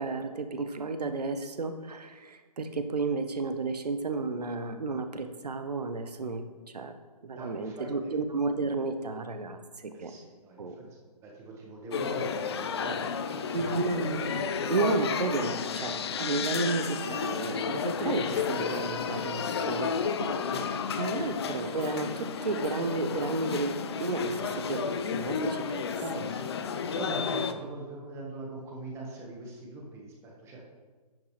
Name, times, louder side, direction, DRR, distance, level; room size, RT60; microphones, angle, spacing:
voice 1, 0.0-6.9 7.2-10.1 10.6-10.8 13.5-19.9 20.2-20.3 21.0-25.9, right 3 dB, 75° right, 8 dB, 1.0 m, -32 dB
voice 2, 7.3-8.2 9.9-13.8 18.2-18.4 20.3-21.3 26.0-26.5 26.9-30.6, right 2 dB, 15° right, -1 dB, 1.3 m, -42 dB
sound 1, 11.9-27.5, left 6 dB, 40° left, 0.5 m, -32 dB
10.5 x 6.4 x 3.2 m, 1.3 s
figure-of-eight pair, 140°, 21 cm